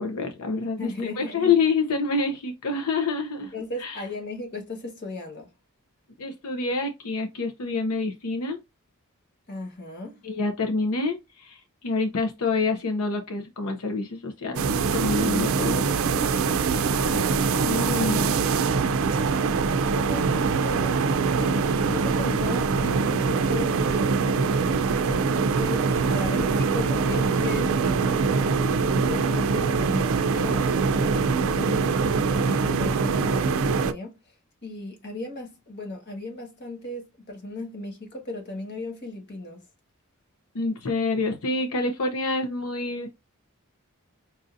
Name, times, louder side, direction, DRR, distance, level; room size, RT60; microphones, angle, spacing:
voice 1, 0.0-0.9 1.2-3.5 3.8-4.0 6.2-8.6 10.2-14.6 14.9-15.8 17.6-18.2 40.5-43.1, left 4 dB, 90° left, 0.7 m, -27 dB
voice 2, 0.8-1.6 3.4-5.5 9.5-10.2 19.6-31.7 32.3-34.2 34.6-39.6, left 2 dB, 50° left, 1.4 m, -37 dB
sound 1, 14.6-33.9, right 4 dB, 65° right, 0.4 m, -23 dB
5.4 x 2.6 x 2.5 m
head